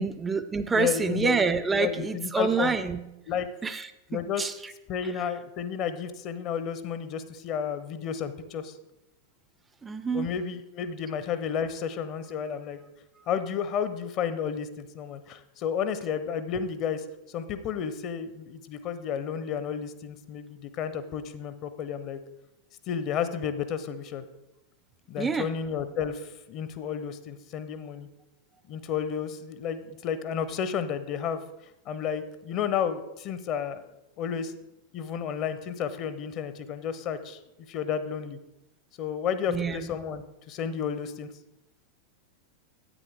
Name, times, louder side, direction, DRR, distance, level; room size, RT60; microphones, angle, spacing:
voice 1, 0.0-3.1 3.6-4.7 9.8-10.3 25.2-25.5 39.5-39.9, right 4 dB, 15° right, 12 dB, 0.4 m, -28 dB
voice 2, 0.7-1.4 1.8-2.7 3.3-3.5 4.1-4.5 4.9-8.7 10.1-12.8 13.3-17.0 17.3-22.2 22.9-24.2 25.1-28.1 28.7-31.4 31.9-33.8 34.2-34.5 34.9-37.4 37.7-38.4 39.0-41.3, left 7 dB, 40° left, 12 dB, 0.6 m, -32 dB
9.8 x 8.7 x 3.4 m, 0.93 s
figure-of-eight pair, 90°, 0 cm